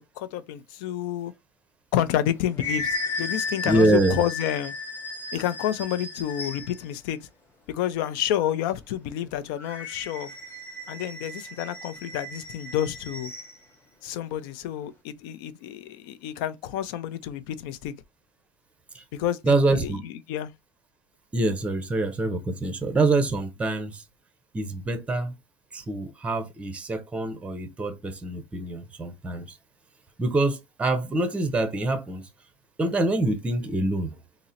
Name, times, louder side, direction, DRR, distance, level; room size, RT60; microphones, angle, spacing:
voice 1, 0.0-1.3 1.9-4.7 5.3-7.2 7.7-10.3 10.9-13.3 14.0-17.9 19.1-20.5, left 11 dB, 80° left, 0.5 m, -29 dB
sound 1, 2.1-6.9 9.6-13.6, left 3 dB, 20° left, 0.8 m, -35 dB
voice 2, 3.6-4.2 18.9-19.0 19.4-20.0 21.3-24.0 24.5-25.3 25.7-29.6 30.2-32.3 32.8-34.2, right 2 dB, 10° right, 0.5 m, -25 dB
3.7 x 2.0 x 4.1 m
cardioid pair, 155°, 11 cm